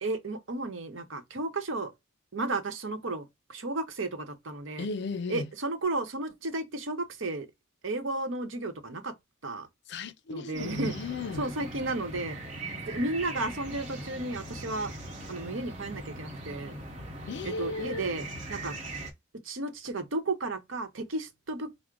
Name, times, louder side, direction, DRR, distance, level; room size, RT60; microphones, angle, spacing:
voice 1, 0.0-1.9 2.3-4.9 5.3-7.5 7.8-9.1 9.4-9.7 10.3-10.9 11.4-12.4 12.9-14.9 15.3-16.7 17.4-18.8 19.4-21.7, right 2 dB, 85° right, 0.9 m, -33 dB
voice 2, 4.8-5.5 9.9-11.5 12.6-12.9 17.3-18.1, left 3 dB, 60° left, 0.4 m, -36 dB
sound 1, 10.5-19.1, right 1 dB, 40° right, 1.1 m, -40 dB
4.6 x 2.0 x 3.7 m
head